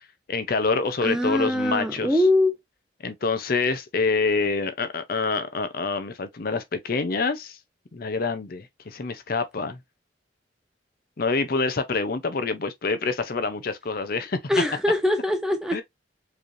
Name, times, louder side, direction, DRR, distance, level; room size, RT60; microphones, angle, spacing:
voice 1, 0.3-2.2 3.0-7.6 7.9-9.8 11.2-14.4 15.7-15.8, left 4 dB, 50° left, 0.6 m, -26 dB
voice 2, 1.0-2.5 14.5-15.8, left 1 dB, 5° right, 0.7 m, -22 dB
4.8 x 3.2 x 2.6 m
head